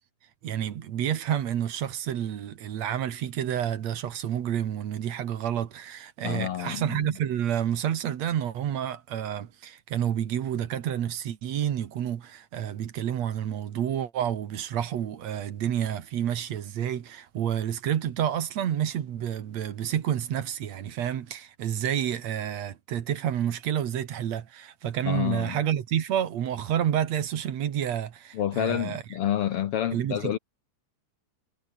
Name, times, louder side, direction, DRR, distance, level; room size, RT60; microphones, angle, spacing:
voice 1, 0.4-29.0 29.9-30.4, right 10 dB, 65° right, 2.7 m, -29 dB
voice 2, 6.2-7.1 25.0-25.6 28.3-30.4, left 11 dB, 65° left, 1.5 m, -29 dB
omnidirectional pair, 3.4 m